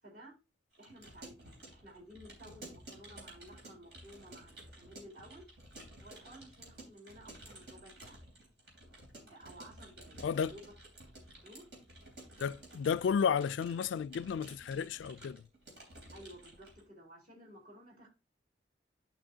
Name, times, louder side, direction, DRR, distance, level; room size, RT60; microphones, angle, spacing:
voice 1, 0.0-0.4 0.8-5.4 6.0-8.2 9.3-10.6 11.4-11.6 16.1-18.1, equal, 45° right, 3.8 m, -54 dB
Keyboard (musical) / Computer keyboard, 0.7-16.8, right 1 dB, 65° right, 3.5 m, -53 dB
voice 2, 12.4-15.4, left 7 dB, 80° left, 0.3 m, -32 dB
11.5 x 5.6 x 2.7 m
head